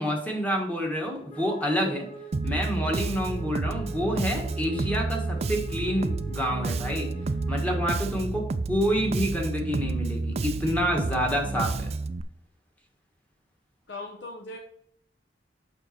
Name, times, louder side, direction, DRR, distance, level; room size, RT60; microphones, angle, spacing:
voice 1, 0.0-2.1 2.4-7.1 7.5-11.9, equal, 10° left, 0 dB, 1.5 m, -28 dB
Wind instrument woodwind instrument, 1.3-7.7, right 5 dB, 35° left, 1.1 m, -44 dB
Bass guitar, 2.3-12.2, right 3 dB, 35° right, 0.4 m, -30 dB
voice 2, 13.9-14.6, left 2 dB, 70° left, 1 dB, 0.9 m, -38 dB
6.9 x 5.4 x 4.3 m, 0.71 s
head